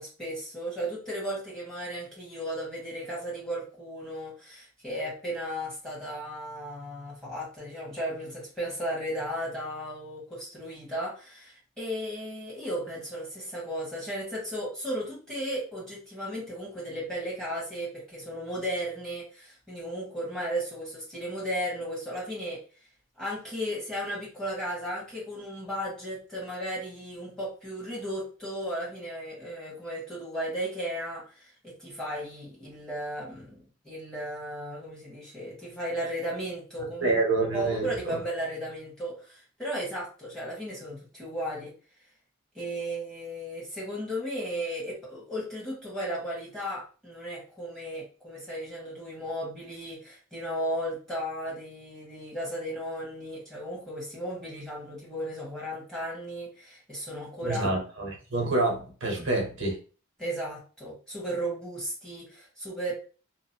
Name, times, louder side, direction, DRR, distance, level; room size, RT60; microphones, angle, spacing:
voice 1, 0.0-22.6 23.2-33.5 33.8-37.2 37.5-41.7 42.5-57.7 60.2-62.9, equal, 5° left, 1.4 m, -35 dB
voice 2, 37.0-38.2 57.4-59.8, right 2 dB, 80° right, 1.0 m, -27 dB
3.0 x 2.3 x 2.8 m
head